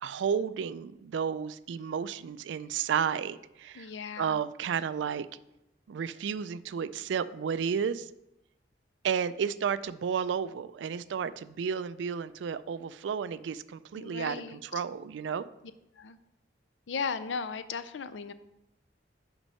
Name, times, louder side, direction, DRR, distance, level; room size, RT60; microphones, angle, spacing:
voice 1, 0.0-3.9 4.2-5.3 5.9-8.1 9.0-15.4, right 7 dB, 85° right, 16 dB, 0.3 m, -32 dB
voice 2, 3.7-4.4 14.0-14.6 16.0-16.2 16.9-18.3, left 5 dB, 90° left, 13 dB, 0.5 m, -36 dB
5.9 x 5.4 x 5.6 m, 0.91 s
head